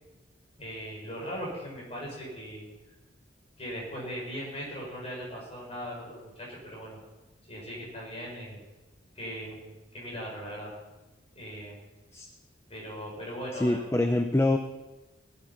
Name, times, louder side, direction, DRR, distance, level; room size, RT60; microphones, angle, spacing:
voice 1, 0.6-2.7 3.6-7.0 7.5-8.6 9.1-10.7 11.3-11.9 12.7-13.8, equal, 30° left, -3 dB, 5.8 m, -39 dB
voice 2, 13.5-14.6, left 2 dB, 15° left, 6 dB, 0.7 m, -25 dB
19.0 x 9.6 x 5.9 m, 1.1 s
head